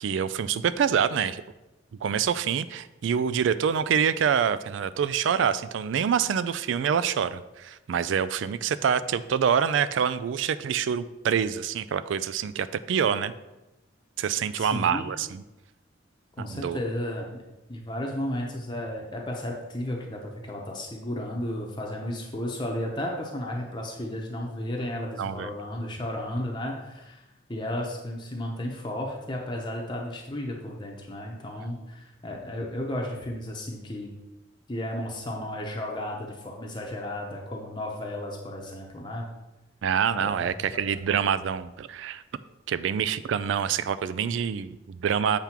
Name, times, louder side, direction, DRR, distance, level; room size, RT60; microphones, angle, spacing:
voice 1, 0.0-1.4 2.0-13.3 14.2-15.4 16.4-16.8 25.2-25.5 39.8-42.2 42.7-45.4, right 7 dB, 70° right, 14 dB, 0.3 m, -26 dB
voice 2, 14.6-15.1 16.4-17.4 17.7-27.2 27.5-34.1 34.7-39.3 40.2-40.5, left 1 dB, 25° left, -1 dB, 0.8 m, -33 dB
7.4 x 3.5 x 5.8 m, 1.0 s
head